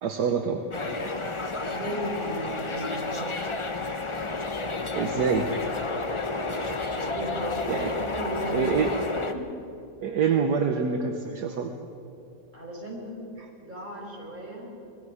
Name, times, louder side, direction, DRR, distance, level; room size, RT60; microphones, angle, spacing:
voice 1, 0.0-0.6 4.9-5.5 7.7-7.9 8.5-8.9 10.0-11.7, right 6 dB, 65° right, 5 dB, 1.5 m, -26 dB
sound 1, 0.7-9.3, left 3 dB, 35° left, 0.4 m, -31 dB
voice 2, 1.7-3.5 6.8-9.5 12.5-13.2 13.6-14.7, right 1 dB, 25° right, -3 dB, 5.2 m, -36 dB
27.0 x 20.5 x 4.9 m, 2.8 s
omnidirectional pair, 2.0 m